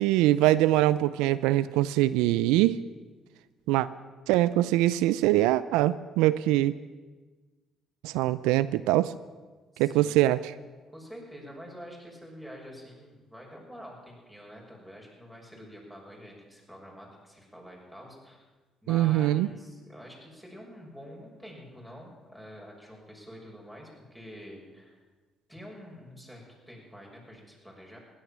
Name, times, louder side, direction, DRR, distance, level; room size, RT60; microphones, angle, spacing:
voice 1, 0.0-2.8 3.7-3.9 4.3-6.7 8.0-9.1 9.8-10.5 18.9-19.5, right 15 dB, 80° right, 16 dB, 0.4 m, -23 dB
voice 2, 9.7-10.2 10.9-18.4 18.8-25.0 25.5-28.0, equal, 5° left, -1 dB, 6.5 m, -47 dB
16.0 x 11.5 x 7.4 m, 1.3 s
hypercardioid pair, 60°, 0 cm